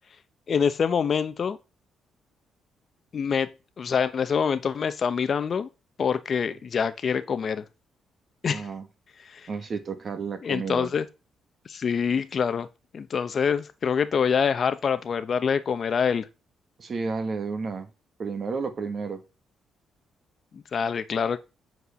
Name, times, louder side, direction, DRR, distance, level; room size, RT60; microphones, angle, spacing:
voice 1, 0.5-1.6 3.1-5.7 6.0-7.6 8.4-8.7 9.3-9.5 10.4-11.1 11.7-12.7 12.9-16.3 20.5-21.4, left 6 dB, 50° left, 0.9 m, -25 dB
voice 2, 8.5-8.9 9.5-10.9 16.8-17.9 18.2-19.2, right 4 dB, 45° right, 1.7 m, -31 dB
8.3 x 4.7 x 7.0 m
cardioid pair, 90°, 0 cm